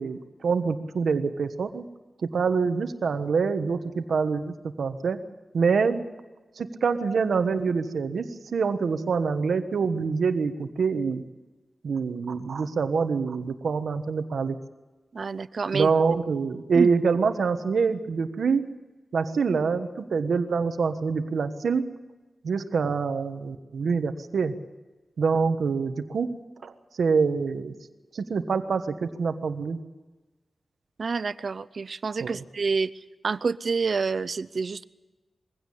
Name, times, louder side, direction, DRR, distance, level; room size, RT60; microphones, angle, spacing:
voice 1, 0.0-1.9 2.2-5.2 5.5-6.0 6.6-11.2 11.8-14.6 15.7-18.7 19.1-21.9 22.4-24.5 25.2-26.3 26.6-26.7 27.0-27.7 28.1-29.8 32.2-32.4, right 5 dB, 90° right, 9 dB, 1.3 m, -25 dB
voice 2, 15.1-15.9 16.7-16.9 31.0-32.9 33.2-34.8, right 4 dB, 55° right, 16 dB, 0.6 m, -28 dB
22.5 x 16.5 x 8.6 m, 1.2 s
wide cardioid pair, 145°, 0 cm